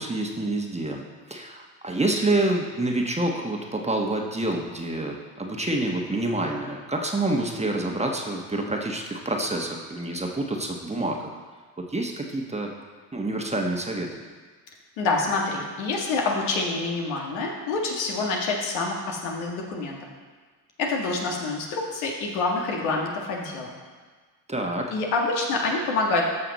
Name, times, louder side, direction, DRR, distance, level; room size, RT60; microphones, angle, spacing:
voice 1, 0.0-11.2 11.8-12.7 13.1-14.1 24.5-24.9, right 2 dB, 15° right, 1 dB, 1.4 m, -27 dB
voice 2, 15.0-20.0 20.8-23.8 24.9-26.2, left 3 dB, 70° left, -1 dB, 1.9 m, -27 dB
13.5 x 5.8 x 4.1 m, 1.5 s
hypercardioid pair, 60°, 48 cm